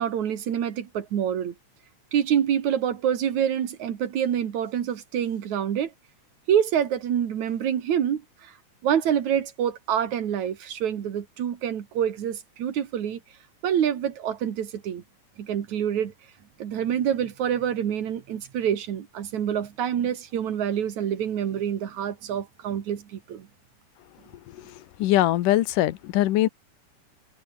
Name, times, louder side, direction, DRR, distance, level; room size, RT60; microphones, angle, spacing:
voice 1, 0.0-1.5 2.1-5.9 6.5-8.5 8.8-13.2 13.6-15.0 15.4-16.1 16.6-23.5, right 9 dB, 65° right, 3.1 m, -26 dB
voice 2, 25.0-26.5, left 14 dB, 85° left, 2.6 m, -21 dB
omnidirectional pair, 3.6 m